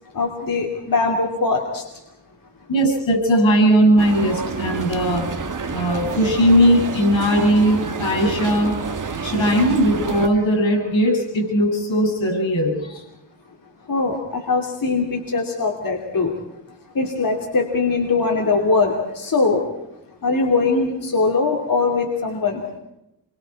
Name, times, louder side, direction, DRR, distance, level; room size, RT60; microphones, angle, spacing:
voice 1, 0.1-1.8 13.9-16.3 16.9-19.6 20.2-22.6, left 3 dB, 50° left, 1 dB, 3.0 m, -21 dB
voice 2, 2.7-5.3 5.7-8.8 9.2-13.0, equal, 85° left, 3 dB, 7.9 m, -18 dB
sound 1, 4.0-10.3, right 5 dB, 45° right, 1.7 m, -28 dB
28.0 x 24.0 x 4.8 m, 0.86 s
wide cardioid pair, 110°, 45 cm